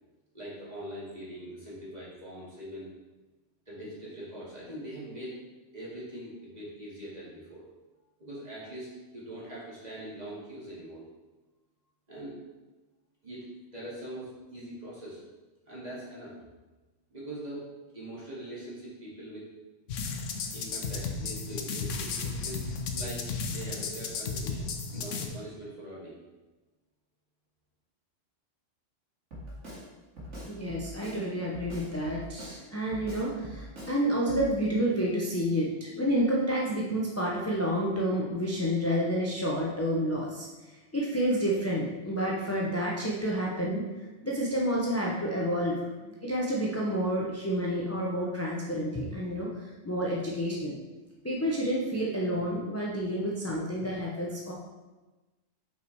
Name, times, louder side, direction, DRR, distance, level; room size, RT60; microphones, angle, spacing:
voice 1, 0.3-2.9 3.7-5.3 5.7-7.6 8.2-11.0 12.1-12.4 13.2-13.5 13.7-15.2 15.7-16.4 17.1-17.6 17.9-19.5 20.5-26.2, right 1 dB, 35° right, -7 dB, 2.3 m, -42 dB
sound 1, 19.9-25.3, left 4 dB, 85° left, 1.1 m, -34 dB
Drum kit, 29.3-29.8 30.2-31.2 31.5-32.6 32.9-34.0 34.3-34.5, equal, 75° right, 2.4 m, -42 dB
voice 2, 30.5-40.5 40.9-43.8 44.2-50.8 51.2-54.5, equal, 15° left, -4 dB, 0.7 m, -29 dB
5.7 x 4.9 x 4.6 m, 1.2 s
omnidirectional pair, 1.2 m